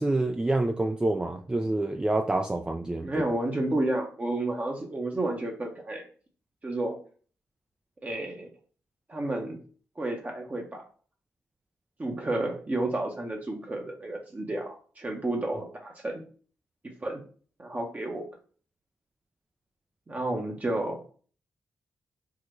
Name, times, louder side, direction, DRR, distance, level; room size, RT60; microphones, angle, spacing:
voice 1, 0.0-3.2, right 2 dB, 15° right, 4 dB, 0.3 m, -27 dB
voice 2, 3.0-6.1 6.6-7.0 8.0-8.5 9.1-9.6 10.0-10.8 12.0-16.2 17.0-17.2 17.6-18.3 20.1-21.0, right 2 dB, 30° right, 1 dB, 0.8 m, -31 dB
3.7 x 2.1 x 3.0 m, 0.42 s
supercardioid pair, 50°, 5 cm